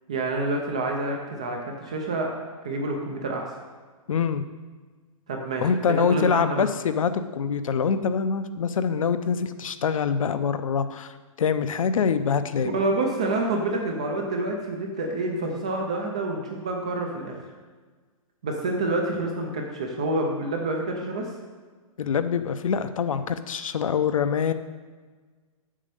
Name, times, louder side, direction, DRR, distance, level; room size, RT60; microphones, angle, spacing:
voice 1, 0.1-2.3 2.6-3.4 5.3-5.6 6.1-6.7 12.7-17.4 18.4-21.3, right 2 dB, 10° right, 2 dB, 0.3 m, -28 dB
voice 2, 4.1-4.4 5.6-12.7 22.0-24.5, left 6 dB, 70° left, 11 dB, 0.7 m, -25 dB
7.5 x 6.3 x 6.7 m, 1.4 s
hypercardioid pair, 180°, 18 cm